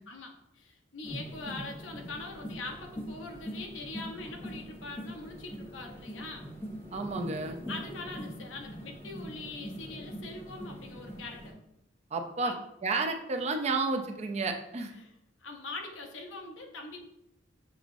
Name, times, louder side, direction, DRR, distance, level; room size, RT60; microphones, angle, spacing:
voice 1, 0.1-6.5 7.7-11.5 12.4-12.6 15.0-15.1 15.4-17.0, left 3 dB, 90° left, 2 dB, 0.8 m, -42 dB
sound 1, 1.0-11.5, equal, 10° left, 0.7 m, -43 dB
voice 2, 6.9-7.6 12.1-12.5 12.8-14.9, right 3 dB, 35° right, 4 dB, 0.5 m, -31 dB
6.5 x 3.0 x 2.6 m, 0.84 s
head